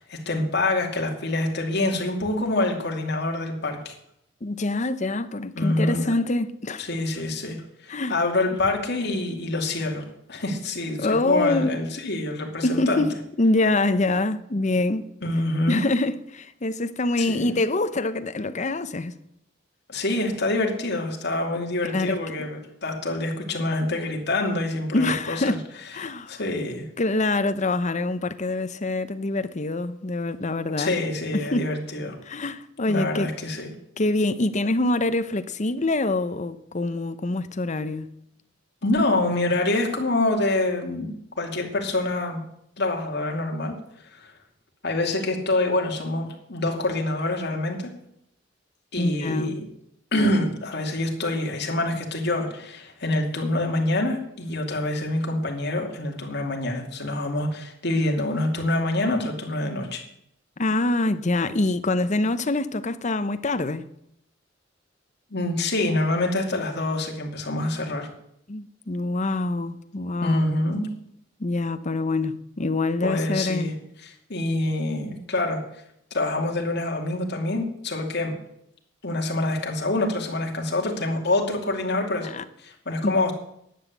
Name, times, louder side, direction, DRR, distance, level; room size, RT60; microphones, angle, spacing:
voice 1, 0.0-3.9 5.6-6.1 6.8-13.1 15.2-15.8 17.2-17.6 19.9-25.6 26.0-26.9 30.8-32.2 32.9-33.7 38.8-42.4 42.8-43.7 44.1-44.3 44.8-47.9 48.9-49.6 50.1-60.0 65.3-68.1 70.2-70.9 73.0-73.7 74.0-75.6 76.1-78.3 79.0-82.3 82.6-83.3, left 2 dB, 60° left, 2.6 m, -26 dB
voice 2, 4.4-6.8 7.9-8.2 11.0-11.8 12.6-15.0 15.7-19.1 21.8-22.5 24.9-25.6 25.9-26.4 27.0-30.9 31.5-31.7 32.2-33.3 34.0-38.1 49.0-49.6 60.6-63.8 68.5-70.4 71.4-73.7 82.2-82.4 83.0-83.2, left 2 dB, 40° left, 0.8 m, -25 dB
11.0 x 8.1 x 8.2 m
head